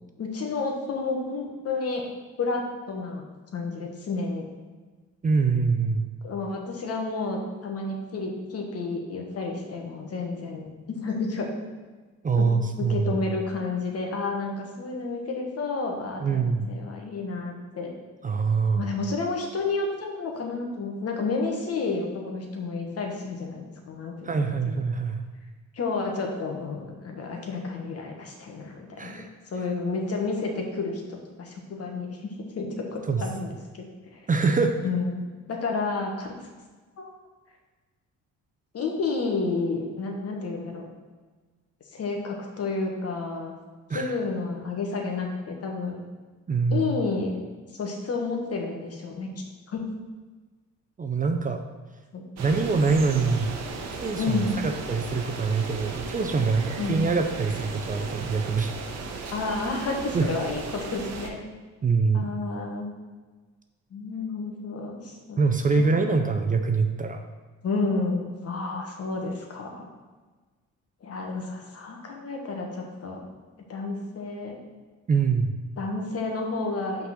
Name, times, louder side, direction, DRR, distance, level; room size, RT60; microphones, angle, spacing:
voice 1, 0.2-2.1 2.4-3.2 3.5-4.4 6.2-11.5 12.3-12.5 12.8-17.9 18.7-24.8 25.7-33.5 34.1-34.2 34.8-36.3 37.0-37.1 38.7-40.8 41.9-43.5 43.9-46.0 46.7-47.4 47.7-49.3 49.7-49.9 52.1-52.2 54.2-54.6 56.8-57.0 59.3-61.4 62.1-62.9 63.9-65.4 66.1-66.3 67.6-69.9 71.0-73.3 73.7-74.6 75.8-77.1, left 3 dB, 55° left, 2 dB, 1.3 m, -31 dB
voice 2, 5.2-6.1 12.2-13.1 16.2-16.7 18.2-18.9 24.2-25.2 29.0-29.3 33.1-33.2 34.3-34.8 43.9-44.2 46.5-46.9 51.0-51.6 52.4-53.5 54.0-58.7 60.1-60.3 61.8-62.3 65.4-67.2 75.1-75.6, right 4 dB, 25° right, 6 dB, 0.5 m, -24 dB
sound 1, 52.4-61.3, right 4 dB, 60° right, 0.9 m, -36 dB
5.7 x 3.9 x 5.9 m, 1.3 s
cardioid pair, 90°, 30 cm